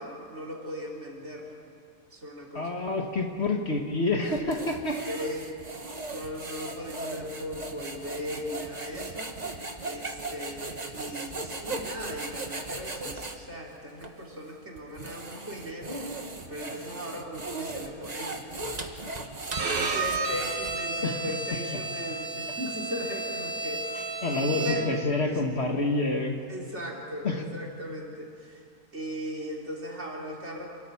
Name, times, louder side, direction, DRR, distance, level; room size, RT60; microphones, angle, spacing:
voice 1, 0.0-1.5 2.1-2.7 5.1-5.5 6.1-9.3 9.8-18.4 19.7-25.4 26.5-28.6 28.9-30.7, equal, 50° right, -2 dB, 3.7 m, -38 dB
voice 2, 2.5-5.0 21.0-21.2 24.2-26.4 27.2-27.4, left 2 dB, 45° left, 2 dB, 1.9 m, -28 dB
sound 1, 4.2-13.4 14.0-14.1 14.8-21.0, right 2 dB, 30° right, 1.4 m, -38 dB
Bowed string instrument, 19.5-25.1, right 3 dB, 75° right, 2.0 m, -32 dB
28.0 x 14.0 x 8.6 m, 2.2 s
omnidirectional pair, 1.6 m